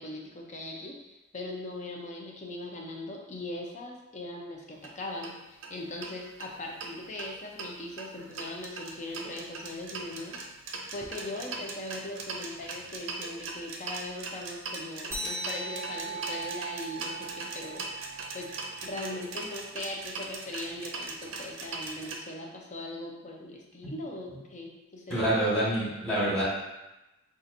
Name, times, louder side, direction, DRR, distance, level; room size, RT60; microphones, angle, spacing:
voice 1, 0.0-10.4 10.9-17.9 18.3-18.5 18.8-25.3, left 1 dB, 35° left, 0 dB, 0.6 m, -40 dB
sound 1, 4.8-4.9 5.2-5.3 5.6-5.7 6.0-6.9 7.2-22.2, right 3 dB, 70° right, 0.6 m, -40 dB
sound 2, 15.1-20.0, right 3 dB, 15° right, 0.5 m, -40 dB
voice 2, 25.1-26.4, right 1 dB, 5° left, -8 dB, 1.5 m, -26 dB
5.6 x 2.5 x 2.6 m, 0.98 s
head